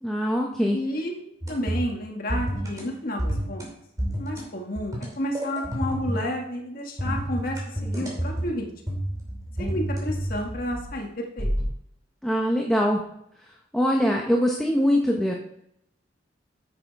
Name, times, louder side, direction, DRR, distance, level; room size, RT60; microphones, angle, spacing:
voice 1, 0.0-0.8 12.2-13.0 13.7-15.3, equal, 5° left, -1 dB, 0.9 m, -22 dB
voice 2, 0.7-3.6 4.2-9.0 9.6-11.5, equal, 50° left, 2 dB, 1.6 m, -31 dB
sound 1, 1.4-2.0 2.3-2.8 3.2-3.7 4.0-4.4 4.7-6.3 7.0-8.5 8.9-10.9 11.4-11.6, equal, 20° right, 2.8 m, -29 dB
9.8 x 7.7 x 4.7 m, 0.76 s
head